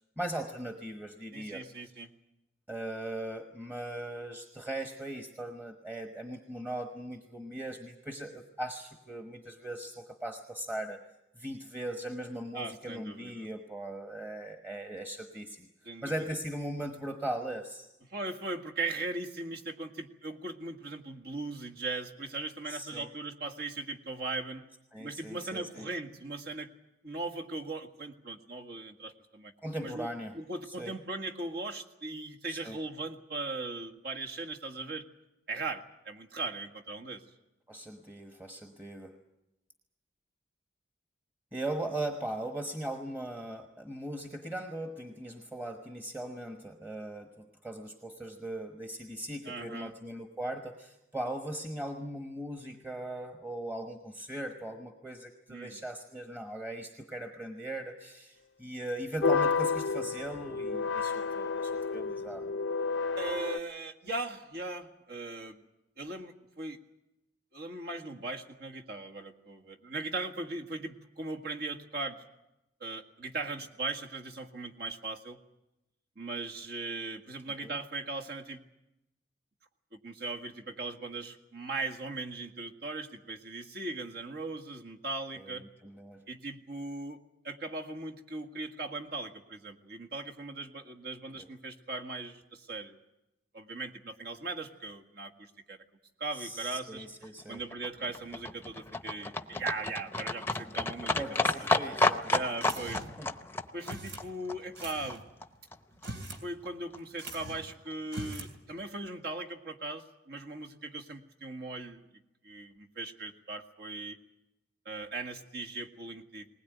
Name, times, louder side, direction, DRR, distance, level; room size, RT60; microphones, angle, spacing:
voice 1, 0.2-1.6 2.7-11.0 11.3-15.7 16.0-17.9 22.7-23.1 24.9-25.9 29.6-30.4 30.6-30.9 32.5-32.8 37.7-39.2 41.5-62.5 77.6-77.8 85.3-86.2 91.4-91.5 96.3-97.6 101.1-103.3, right 1 dB, 10° right, 4 dB, 1.2 m, -39 dB
voice 2, 1.3-2.1 12.5-13.5 15.9-16.1 18.1-24.6 25.0-26.7 27.0-29.5 29.8-30.1 30.3-35.1 35.5-37.2 49.4-49.9 55.5-55.8 63.2-65.6 66.0-66.8 67.5-72.2 72.8-75.4 76.2-78.6 79.9-85.6 86.3-87.2 87.4-93.0 93.5-95.8 96.2-97.0 97.5-101.8 102.3-103.0 103.7-105.2 106.4-112.0 112.4-114.2 114.9-116.5, right 3 dB, 60° right, 2 dB, 1.8 m, -39 dB
sound 1, 59.2-63.6, left 4 dB, 85° left, 0.7 m, -30 dB
Livestock farm animals working animals, 97.2-105.5 105.7-105.8 106.0-106.1 106.3-106.4 106.6-106.7 106.9-107.0 107.3-107.4 107.6-107.7 107.9-108.0, left 2 dB, 15° left, 0.8 m, -32 dB
sound 2, 102.6-103.3 103.9-104.3 104.8-105.2 105.9-106.5 106.7-106.8 107.2-107.7 108.1-108.5, right 2 dB, 85° right, 3.0 m, -42 dB
20.0 x 20.0 x 9.3 m, 0.92 s
head